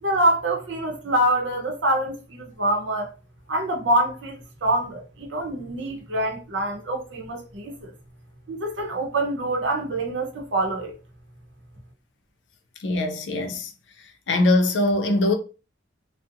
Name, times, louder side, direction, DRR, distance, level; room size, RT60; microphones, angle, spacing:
voice 1, 0.0-3.1 3.5-7.9 8.5-10.9, right 1 dB, 85° right, 0.7 m, -25 dB
voice 2, 12.8-13.7 14.3-15.3, left 2 dB, 75° left, 0.5 m, -21 dB
2.5 x 2.0 x 2.6 m
head